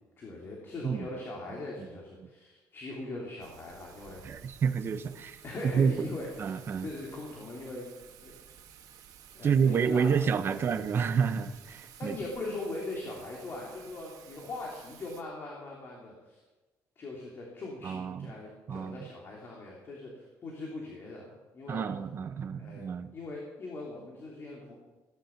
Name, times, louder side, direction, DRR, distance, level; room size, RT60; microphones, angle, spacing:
voice 1, 0.2-4.2 5.4-7.9 8.2-8.3 9.3-10.2 10.5-10.7 12.0-16.4 17.0-21.8 22.6-22.8 23.1-24.8, left 2 dB, 40° left, -2 dB, 3.3 m, -41 dB
Thunder / Rain, 3.4-15.2, right 9 dB, 70° right, 2.0 m, -54 dB
voice 2, 4.2-5.4 5.7-6.1 6.4-6.9 9.4-12.2 17.8-18.3 18.7-19.1 21.7-23.1, right 6 dB, 40° right, 10 dB, 1.0 m, -29 dB
17.0 x 11.0 x 6.0 m, 1.2 s
cardioid pair, 145°, 6 cm